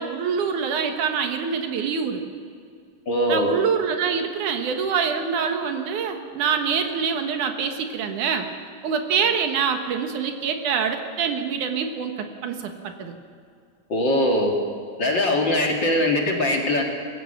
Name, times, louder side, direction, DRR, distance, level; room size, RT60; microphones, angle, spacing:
voice 1, 0.0-2.2 3.3-8.5 8.8-13.1, right 6 dB, 75° right, 5 dB, 2.8 m, -25 dB
voice 2, 3.1-3.5 13.9-14.5 15.0-16.8, left 1 dB, 40° left, 1 dB, 2.2 m, -21 dB
22.0 x 15.5 x 7.9 m, 2.2 s
omnidirectional pair, 3.7 m